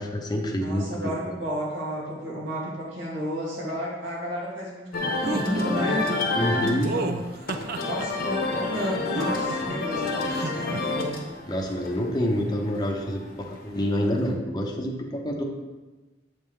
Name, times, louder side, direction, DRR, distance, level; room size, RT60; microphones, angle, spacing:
voice 1, 0.0-1.1 6.4-6.9 11.5-15.4, equal, 20° left, 1 dB, 0.8 m, -27 dB
voice 2, 0.6-6.1 6.9-7.2 7.8-11.2, equal, 80° right, -5 dB, 2.4 m, -32 dB
sound 1, 4.9-14.3, left 3 dB, 55° left, 1.0 m, -30 dB
sound 2, 5.2-5.5 6.8-8.1 8.8-9.8 10.3-10.8, right 3 dB, 50° right, 0.4 m, -32 dB
7.9 x 5.5 x 3.3 m, 1.2 s
head